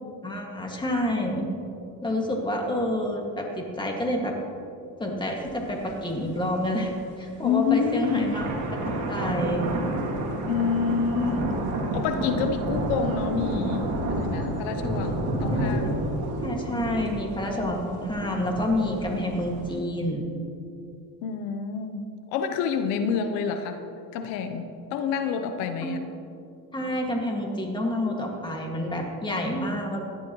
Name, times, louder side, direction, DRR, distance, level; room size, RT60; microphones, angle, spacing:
voice 1, 0.2-1.5 2.0-4.3 5.0-6.9 7.2-8.6 9.1-9.7 15.5-15.9 16.4-20.2 25.8-25.9 26.7-30.0, left 1 dB, 10° left, 0 dB, 2.0 m, -28 dB
sound 1, 5.5-5.6 5.9-6.0 6.5-6.9 7.6-19.8, right 1 dB, 50° right, 2.7 m, -30 dB
voice 2, 7.4-8.3 10.5-11.5 11.9-16.0 21.2-22.0 22.3-23.8 24.1-26.0, left 6 dB, 85° left, 8 dB, 0.9 m, -28 dB
17.0 x 11.0 x 3.1 m, 2.5 s
cardioid pair, 115°, 37 cm